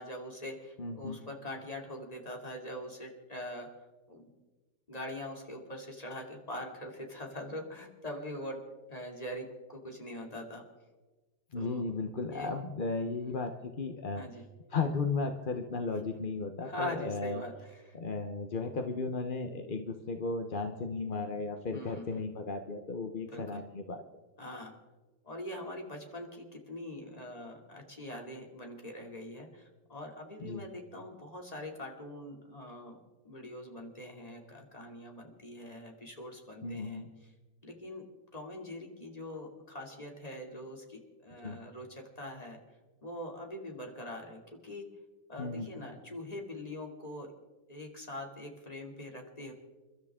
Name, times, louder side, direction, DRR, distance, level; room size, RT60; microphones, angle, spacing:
voice 1, 0.0-3.7 4.1-4.3 4.9-8.6 8.9-10.6 11.5-11.8 12.3-12.5 14.1-14.4 16.6-17.9 21.7-22.2 23.3-23.6 24.4-24.7 25.2-33.0 33.2-37.0 37.6-38.0 38.3-42.6 43.0-44.8 45.3-47.3 47.7-49.5, left 1 dB, 20° left, 1 dB, 2.7 m, -43 dB
voice 2, 0.8-1.2 11.5-14.2 14.7-17.4 17.9-24.0 30.4-30.6 36.6-37.1 41.4-41.6 45.4-45.7, left 4 dB, 40° left, 5 dB, 0.8 m, -35 dB
29.5 x 13.0 x 3.7 m, 1.2 s
omnidirectional pair, 2.0 m